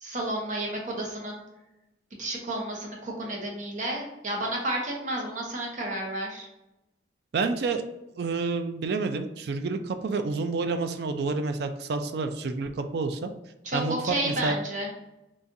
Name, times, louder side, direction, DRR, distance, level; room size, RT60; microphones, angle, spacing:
voice 1, 0.0-1.4 2.2-6.5 13.6-14.9, right 1 dB, 45° right, -1 dB, 0.8 m, -31 dB
voice 2, 7.3-7.8 8.2-13.3 13.7-14.6, right 3 dB, 65° right, 7 dB, 0.3 m, -29 dB
3.8 x 2.4 x 2.6 m, 0.94 s
head